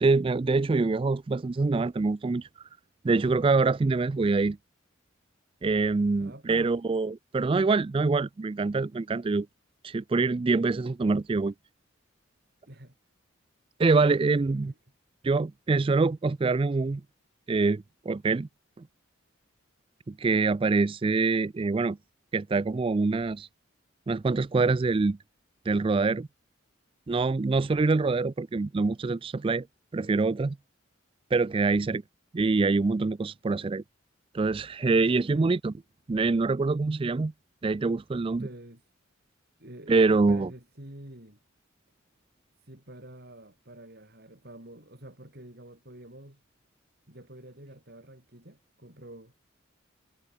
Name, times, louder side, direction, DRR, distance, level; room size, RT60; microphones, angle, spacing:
voice 1, 0.0-2.4 3.0-4.6 5.6-9.5 9.8-11.5 13.8-14.7 15.2-17.0 17.5-18.5 20.1-22.0 22.3-23.5 24.1-25.2 25.7-26.3 27.1-29.7 29.9-30.6 31.3-32.0 32.3-33.8 34.3-35.7 36.1-37.3 37.6-38.5 39.9-40.5, right 3 dB, 25° right, 0.3 m, -25 dB
voice 2, 6.2-6.7 12.7-12.9 14.1-14.7 35.3-35.6 38.3-38.8 39.6-41.4 42.6-46.4 47.1-49.3, right 1 dB, 50° right, 4.8 m, -48 dB
head